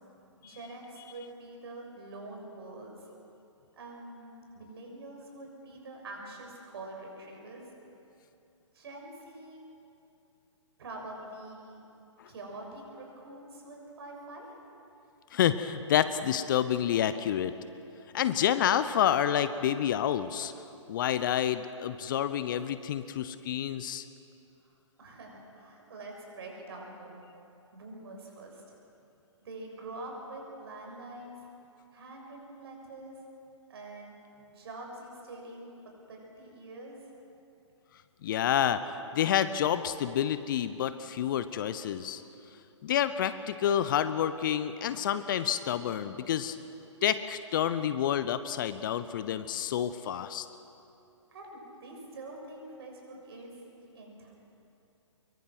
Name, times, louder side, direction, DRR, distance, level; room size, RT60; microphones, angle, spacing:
voice 1, 0.4-3.1 3.7-7.7 8.7-9.7 10.8-11.8 12.3-14.5 24.6-24.7 25.0-27.2 27.7-28.6 29.4-31.3 31.9-33.2 33.7-34.1 34.5-35.7 36.1-37.0 51.3-54.3, right 2 dB, 50° right, 1 dB, 6.5 m, -45 dB
voice 2, 15.3-17.5 18.1-20.5 20.9-24.0 38.2-42.2 42.8-46.6 47.0-50.5, left 10 dB, 40° left, 13 dB, 0.8 m, -28 dB
24.5 x 23.0 x 6.2 m, 2.8 s
figure-of-eight pair, 125°, 16 cm